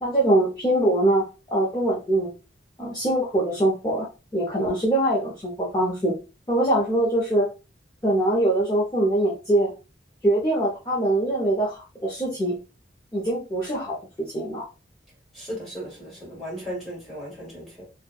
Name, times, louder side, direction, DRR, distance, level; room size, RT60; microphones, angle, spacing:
voice 1, 0.0-2.3 2.8-4.1 4.3-6.1 6.5-7.5 8.0-9.7 10.2-12.5 13.1-14.6, right 1 dB, 20° left, 0.5 m, -23 dB
voice 2, 15.3-17.8, equal, ahead, 1.6 m, -36 dB
3.1 x 2.2 x 2.2 m
head